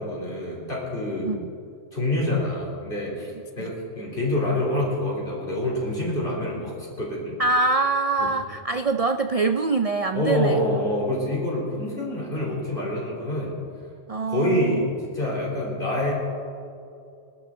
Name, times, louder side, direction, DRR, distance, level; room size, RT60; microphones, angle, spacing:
voice 1, 0.0-1.4 1.9-7.3 8.2-8.3 10.1-13.6 14.3-16.1, left 1 dB, 45° left, -3 dB, 3.7 m, -26 dB
voice 2, 3.3-3.8 7.4-10.7 14.1-14.9, right 3 dB, 65° right, 7 dB, 0.3 m, -24 dB
24.5 x 12.5 x 3.8 m, 2.5 s
omnidirectional pair, 1.3 m